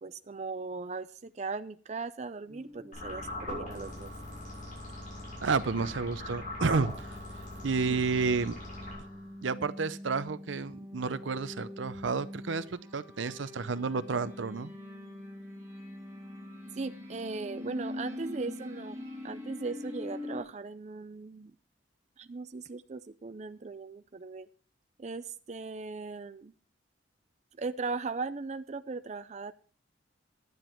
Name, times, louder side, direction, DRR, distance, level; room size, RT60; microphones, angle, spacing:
voice 1, 0.0-4.1 7.8-8.0 16.8-19.0 19.2-21.5 22.2-24.5 25.0-26.5 27.5-29.5, right 4 dB, 35° right, 11 dB, 0.4 m, -38 dB
sound 1, 2.5-20.4, left 1 dB, 15° right, 2.9 m, -45 dB
sound 2, 2.9-9.4, left 1 dB, 45° left, 7.0 m, -41 dB
voice 2, 5.4-7.1 7.6-8.6 9.4-14.7, right 4 dB, 80° right, 15 dB, 0.7 m, -31 dB
11.5 x 9.6 x 4.5 m, 0.43 s
head